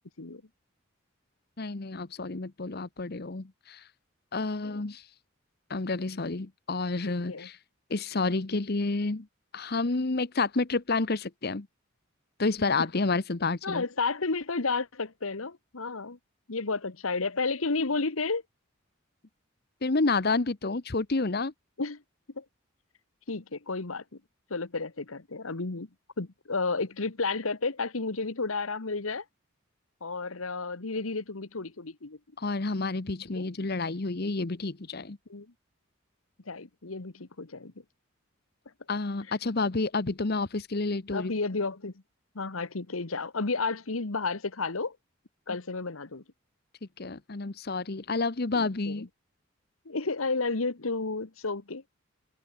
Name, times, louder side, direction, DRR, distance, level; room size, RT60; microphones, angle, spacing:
voice 1, 1.6-3.9 4.3-5.1 5.7-7.6 7.9-9.3 9.5-11.7 12.4-13.8 19.8-21.5 32.4-35.2 38.9-41.3 47.0-49.1, left 3 dB, 50° left, 1.0 m, -29 dB
voice 2, 7.0-7.5 13.6-16.2 16.5-18.4 21.8-22.0 22.4-22.5 23.3-24.2 24.5-25.9 26.2-29.2 30.0-32.2 33.3-33.5 35.3-35.5 36.5-37.7 41.1-41.9 42.3-45.0 45.5-46.2 48.5-49.1 49.8-51.8, left 3 dB, 85° left, 1.4 m, -32 dB
head